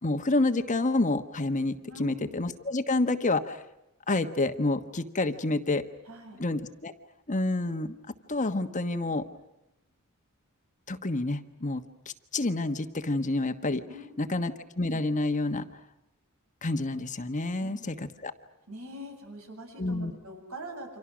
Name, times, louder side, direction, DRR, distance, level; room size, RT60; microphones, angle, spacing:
voice 1, 0.0-3.6 4.1-5.8 6.4-6.9 7.3-8.0 8.3-9.2 10.9-11.8 12.3-13.8 14.2-15.7 16.6-18.3 19.8-20.1, left 2 dB, 35° left, 9 dB, 1.3 m, -28 dB
voice 2, 1.9-2.3 6.1-6.4 13.9-14.5 17.6-17.9 18.7-21.0, right 1 dB, 75° right, 3 dB, 7.8 m, -43 dB
29.5 x 26.0 x 6.3 m, 0.89 s
head